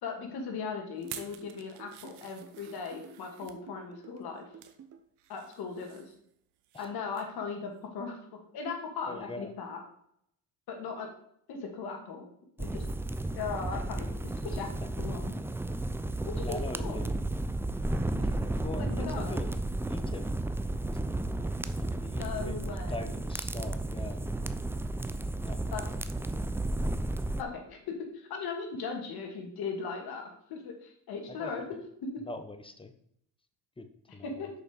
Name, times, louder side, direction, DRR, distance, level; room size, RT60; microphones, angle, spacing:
voice 1, 0.0-4.4 5.3-6.1 6.8-8.2 8.5-9.8 10.7-11.1 11.5-12.2 12.6-12.8 13.3-14.1 14.4-15.3 16.3-17.0 18.2-18.3 18.8-19.4 22.2-23.0 25.7-25.8 27.4-30.2 30.5-31.7 34.2-34.5, left 5 dB, 65° left, 2 dB, 2.3 m, -38 dB
sound 1, 1.0-5.0, right 7 dB, 40° right, 1.1 m, -52 dB
sound 2, 1.0-3.6 4.2-4.8 5.2-6.9 7.1-7.4 7.8-7.9, right 11 dB, 75° right, 0.9 m, -49 dB
voice 2, 9.1-9.5 16.4-17.1 18.2-19.5 19.9-20.3 20.8-21.0 21.3-21.5 21.8-24.2 25.4-26.4 31.3-31.8 32.2-32.9 33.8-33.9 34.1-34.5, left 2 dB, 15° left, 8 dB, 1.0 m, -43 dB
sound 3, 12.6-27.4, right 2 dB, 5° right, 0.4 m, -33 dB
6.3 x 5.5 x 5.2 m, 0.70 s
supercardioid pair, 75°, 40 cm